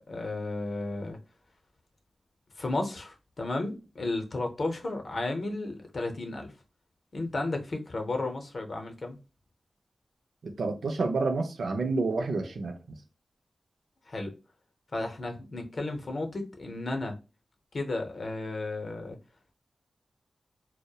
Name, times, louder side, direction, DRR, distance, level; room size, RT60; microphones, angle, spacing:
voice 1, 0.1-1.2 2.6-6.5 7.1-9.2 14.1-14.3 14.9-17.1 17.7-19.2, left 2 dB, 60° left, 0.6 m, -33 dB
voice 2, 10.4-12.7, right 3 dB, 85° right, 0.4 m, -29 dB
2.7 x 2.0 x 2.2 m
cardioid pair, 55°, 0 cm